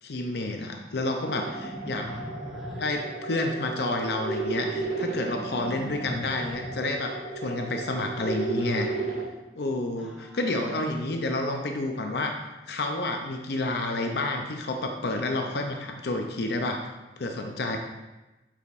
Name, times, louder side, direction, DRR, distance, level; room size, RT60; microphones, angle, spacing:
voice 1, 0.0-2.1 2.7-8.9 9.5-16.8 17.2-17.8, left 2 dB, 65° left, 3 dB, 0.6 m, -30 dB
sound 1, 1.2-9.2, right 3 dB, 45° left, 2.0 m, -34 dB
voice 2, 2.1-2.9 5.8-6.1 9.9-10.9, left 1 dB, ahead, -6 dB, 1.4 m, -48 dB
8.0 x 5.0 x 2.6 m, 1.1 s
head